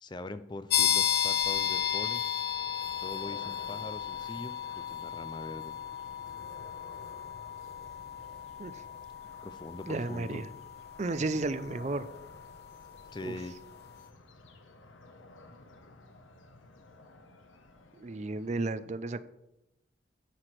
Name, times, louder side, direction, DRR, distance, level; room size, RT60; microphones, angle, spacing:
voice 1, 0.0-2.3 3.0-5.7 9.4-10.4 13.1-13.5, left 2 dB, 25° left, 12 dB, 0.4 m, -42 dB
sound 1, 0.7-13.2, left 10 dB, 55° left, 0.7 m, -34 dB
sound 2, 1.5-18.7, left 2 dB, 90° left, 1.0 m, -54 dB
voice 2, 9.9-10.5 11.0-12.0 13.2-13.3 17.9-19.2, right 2 dB, 35° right, 14 dB, 0.4 m, -33 dB
10.0 x 4.9 x 5.9 m, 0.89 s
head